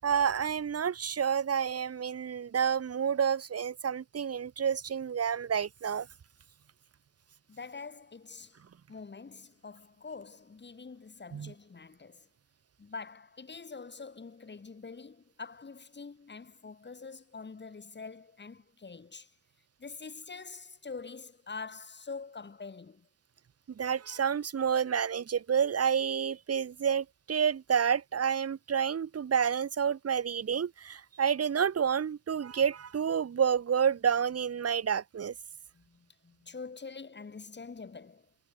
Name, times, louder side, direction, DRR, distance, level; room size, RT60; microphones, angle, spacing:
voice 1, 0.0-6.1 11.3-11.5 23.7-35.3, right 7 dB, 45° right, 1.7 m, -29 dB
voice 2, 7.5-8.6 8.9-12.3 12.8-19.4 19.8-23.1 35.7-38.3, left 4 dB, 30° left, 7.1 m, -45 dB
wide cardioid pair, 135°, 33 cm